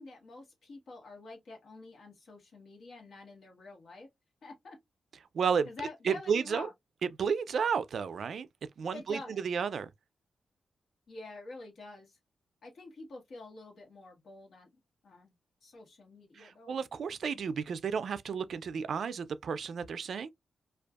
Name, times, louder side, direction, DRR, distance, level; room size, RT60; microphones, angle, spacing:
voice 1, 0.0-4.1 4.4-4.8 5.6-6.7 8.9-9.4 11.1-12.2 12.6-14.7 15.0-15.4 15.6-16.8, left 3 dB, 70° left, 1.1 m, -47 dB
voice 2, 5.3-5.7 6.1-6.7 7.2-8.5 8.8-9.9 16.4-20.3, right 6 dB, 70° right, 0.3 m, -32 dB
2.6 x 2.3 x 2.3 m
wide cardioid pair, 110°, 0 cm